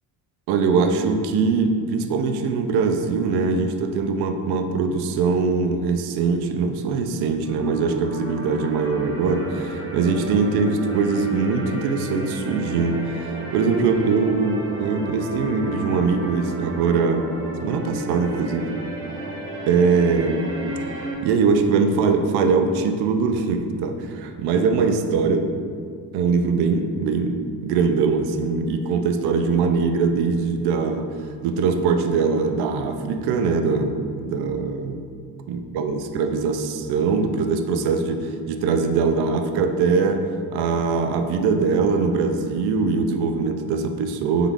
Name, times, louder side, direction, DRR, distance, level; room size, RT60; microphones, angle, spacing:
voice 1, 0.5-17.3 17.6-18.7 19.7-20.5 21.2-25.5 26.1-31.1 31.4-35.0 35.5-44.5, right 4 dB, 75° right, 7 dB, 0.5 m, -22 dB
sound 1, 7.4-21.1, right 1 dB, 35° right, 0.7 m, -33 dB
3.7 x 3.6 x 3.5 m, 2.2 s
cardioid pair, 130°, 39 cm